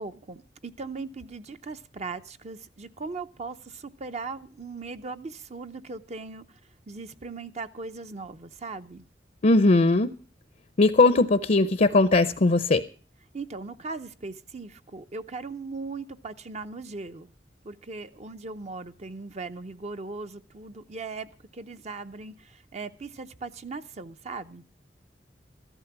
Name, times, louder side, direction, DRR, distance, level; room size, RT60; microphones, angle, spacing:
voice 1, 0.0-6.6 6.9-9.1 13.3-17.3 17.6-24.6, right 3 dB, 40° right, 9 dB, 0.6 m, -39 dB
voice 2, 9.4-10.1 10.8-12.8, left 2 dB, 45° left, 13 dB, 0.6 m, -19 dB
14.0 x 12.0 x 5.9 m, 0.38 s
head